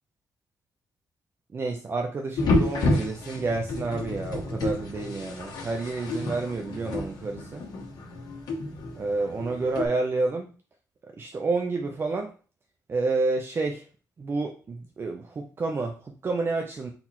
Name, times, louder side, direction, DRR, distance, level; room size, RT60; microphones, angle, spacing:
voice 1, 1.5-7.6 9.0-10.5 11.2-12.3 12.9-13.8 14.2-16.9, right 3 dB, 35° right, 3 dB, 0.6 m, -29 dB
sound 1, 2.4-9.9, left 2 dB, 75° left, 1.4 m, -30 dB
4.0 x 3.0 x 4.2 m, 0.37 s
cardioid pair, 110°, 7 cm